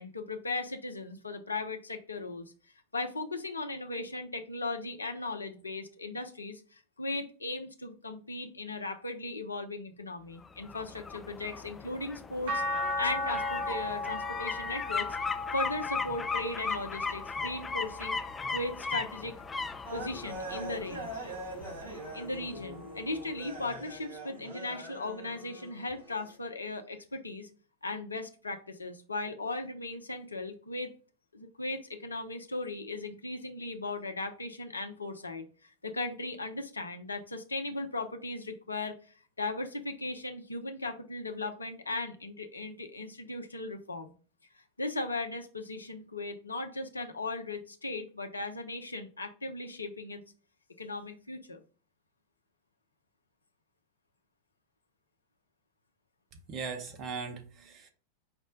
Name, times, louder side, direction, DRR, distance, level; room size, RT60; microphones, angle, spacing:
voice 1, 0.0-2.5 2.9-12.6 13.0-15.1 15.5-18.2 18.5-19.3 19.9-21.1 22.1-27.5 27.8-30.9 31.3-38.9 39.4-44.1 44.8-50.2 50.8-51.6, left 2 dB, 80° left, 0.6 m, -37 dB
sound 1, 10.4-23.2 23.6-23.7, left 4 dB, 15° left, 0.3 m, -38 dB
sound 2, 12.5-18.8 19.3-20.7 22.1-22.2, left 2 dB, 60° right, 1.2 m, -37 dB
sound 3, 19.8-26.3, right 1 dB, 75° right, 2.6 m, -43 dB
voice 2, 56.5-57.9, right 5 dB, 35° right, 0.9 m, -39 dB
5.0 x 2.1 x 4.8 m
figure-of-eight pair, 90°, 0 cm